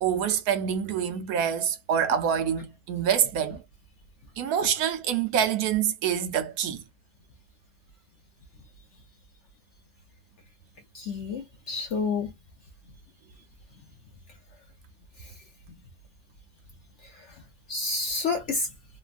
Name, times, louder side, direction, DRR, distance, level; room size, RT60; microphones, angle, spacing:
voice 1, 0.0-3.6 4.4-6.8, right 8 dB, 75° right, 1.0 m, -26 dB
voice 2, 10.9-12.3 17.7-18.7, left 4 dB, 65° left, 0.7 m, -29 dB
3.0 x 2.2 x 2.4 m
omnidirectional pair, 1.7 m